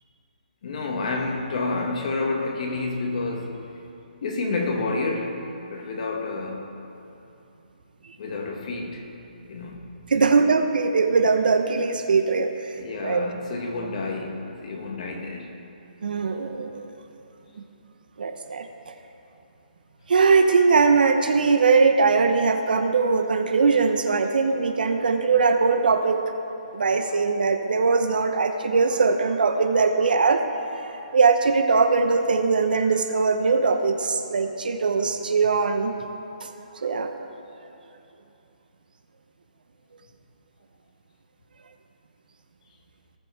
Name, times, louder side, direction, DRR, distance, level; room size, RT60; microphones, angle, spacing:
voice 1, 0.6-3.6 4.2-6.8 8.2-9.1 9.5-10.2 12.8-15.5, left 3 dB, 50° left, 1 dB, 1.8 m, -29 dB
voice 2, 10.1-12.8 13.0-13.2 16.0-16.9 18.2-18.7 20.1-26.2 26.7-30.4 30.7-35.9 36.4-36.5 36.8-37.1, right 4 dB, 75° right, 6 dB, 1.0 m, -21 dB
18.0 x 7.6 x 3.4 m, 2.9 s
hypercardioid pair, 155°, 5 cm